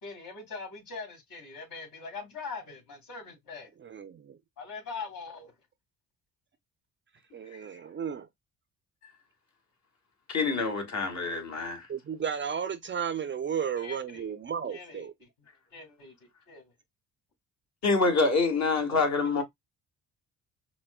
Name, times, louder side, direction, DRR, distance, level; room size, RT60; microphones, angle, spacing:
voice 1, 0.0-3.7 4.6-5.5 13.8-14.3 14.7-16.7 18.9-19.1, left 4 dB, 65° left, 2.4 m, -42 dB
voice 2, 3.8-4.4 7.3-8.3 11.9-15.1, right 7 dB, 30° right, 0.5 m, -34 dB
voice 3, 10.3-11.9 17.8-19.4, left 3 dB, 50° left, 1.6 m, -26 dB
5.9 x 2.1 x 2.3 m
supercardioid pair, 65°, 37 cm